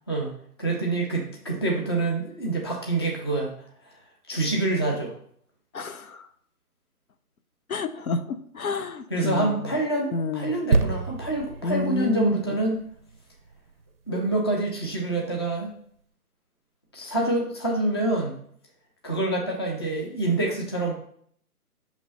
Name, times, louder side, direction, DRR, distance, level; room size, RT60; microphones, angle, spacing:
voice 1, 0.6-3.5 3.8-3.9 4.3-5.1 9.1-12.8 14.1-15.7 16.9-18.3 19.0-20.9, right 2 dB, 20° left, -1 dB, 0.5 m, -26 dB
voice 2, 5.7-6.3 7.7-9.7 10.1-10.5 11.6-12.4, left 4 dB, 70° left, 9 dB, 0.7 m, -29 dB
sound 1, 10.7-14.3 14.9-15.0, right 4 dB, 40° right, 0.5 m, -28 dB
5.8 x 3.1 x 5.4 m, 0.64 s
figure-of-eight pair, 140°, 45 cm